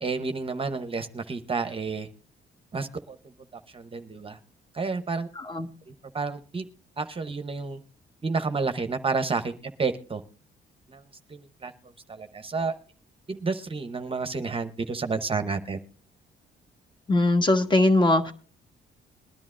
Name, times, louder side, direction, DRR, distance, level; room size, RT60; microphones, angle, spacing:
voice 1, 0.0-2.1 2.7-3.2 3.7-4.4 4.7-5.3 6.1-6.7 7.0-7.8 8.2-10.2 10.9-11.0 11.3-11.7 12.1-12.7 13.3-15.8, right 4 dB, 25° right, 8 dB, 0.8 m, -30 dB
voice 2, 5.3-5.7 17.1-18.3, left 2 dB, 25° left, 5 dB, 1.3 m, -21 dB
21.5 x 10.5 x 2.5 m, 0.39 s
cardioid pair, 90°, 20 cm